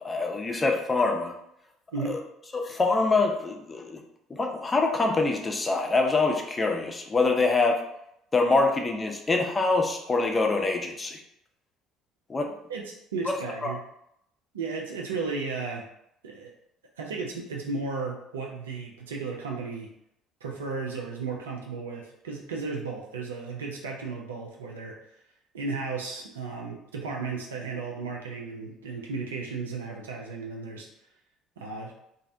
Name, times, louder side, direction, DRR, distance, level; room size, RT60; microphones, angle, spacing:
voice 1, 0.0-1.3 2.1-2.2 2.5-4.0 4.3-7.8 8.3-11.2 12.3-12.6 13.3-13.4 13.6-13.7, left 3 dB, 25° left, 3 dB, 0.5 m, -25 dB
voice 2, 12.7-13.8 14.5-15.8 16.2-16.5 17.0-19.9 20.4-24.9 25.5-30.9 31.6-31.9, right 4 dB, 85° right, -1 dB, 0.3 m, -34 dB
2.5 x 2.0 x 2.6 m, 0.76 s
hypercardioid pair, 60°, 0 cm